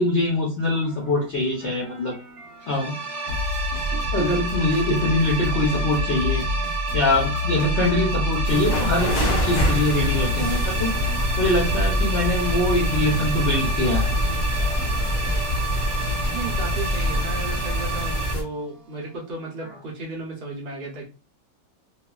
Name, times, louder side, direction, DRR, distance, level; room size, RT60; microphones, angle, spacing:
voice 1, 0.0-2.2 2.7-3.0 3.9-6.4 6.9-10.9 11.4-14.1, left 2 dB, 85° left, -3 dB, 0.6 m, -23 dB
sound 1, 0.7-19.8, left 2 dB, 50° right, 0.8 m, -30 dB
sound 2, 2.6-18.3, right 3 dB, 25° right, 1.1 m, -31 dB
sound 3, 8.4-18.4, equal, 45° left, 0.8 m, -26 dB
voice 2, 16.3-21.1, right 3 dB, 90° right, -2 dB, 0.4 m, -34 dB
3.1 x 2.2 x 2.3 m, 0.31 s
omnidirectional pair, 2.2 m